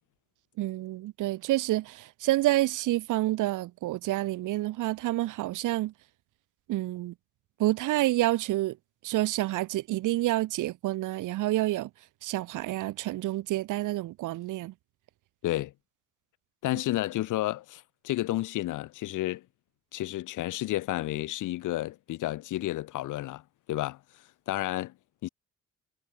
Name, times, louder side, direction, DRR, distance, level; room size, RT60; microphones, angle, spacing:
voice 1, 0.6-5.9 6.7-7.1 7.6-8.8 9.0-11.9 12.2-14.7, right 16 dB, 90° right, 2.5 m, -28 dB
voice 2, 15.4-15.7 16.6-19.4 19.9-23.4 23.7-24.0 24.5-24.9 25.2-25.3, left 16 dB, 85° left, 2.0 m, -31 dB
cardioid pair, 90°, 30 cm